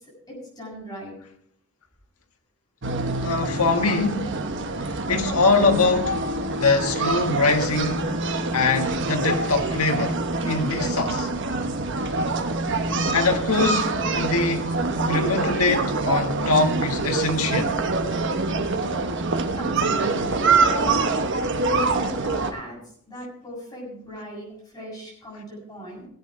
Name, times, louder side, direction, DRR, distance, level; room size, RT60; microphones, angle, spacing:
voice 1, 0.3-1.2 18.9-19.1 19.6-21.1 21.4-22.8 23.1-26.1, equal, 20° left, 7.1 m, -38 dB
sound 1, 2.8-22.5, right 3 dB, 55° right, 1.2 m, -25 dB
voice 2, 3.2-4.3 5.1-6.2 6.6-8.1 8.5-10.2 10.4-11.3 13.1-17.8, left 3 dB, 85° left, 1.6 m, -23 dB
17.5 x 8.5 x 4.9 m
head